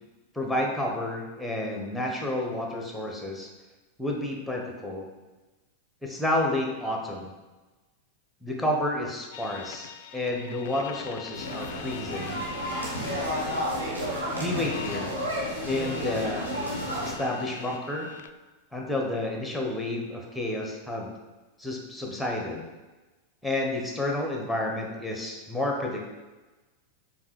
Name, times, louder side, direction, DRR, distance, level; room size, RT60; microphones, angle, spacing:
voice 1, 0.3-3.5 4.0-5.1 6.0-7.3 8.4-12.4 14.4-15.1 15.6-16.5 17.0-18.1 18.7-21.1 21.6-22.6 23.4-26.1, left 1 dB, ahead, 0 dB, 1.1 m, -30 dB
sound 1, 9.3-18.3, left 9 dB, 55° left, 0.3 m, -43 dB
sound 2, 11.3-17.1, equal, 85° right, 1.4 m, -31 dB
7.2 x 2.9 x 4.7 m, 1.2 s
figure-of-eight pair, 90°, 0 cm